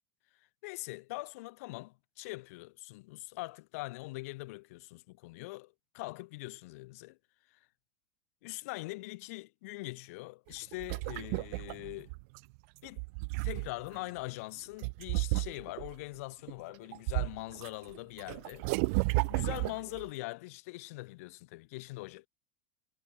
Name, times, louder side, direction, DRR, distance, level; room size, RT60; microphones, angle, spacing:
voice 1, 0.6-7.2 8.4-12.1 12.8-13.0 13.4-18.7 18.9-22.3, left 22 dB, 70° left, 1.0 m, -42 dB
sound 1, 10.5-12.4 12.8-14.0 14.8-15.9 16.5-17.7 17.9-20.1, right 32 dB, 65° right, 0.8 m, -33 dB
supercardioid pair, 110°, 8 cm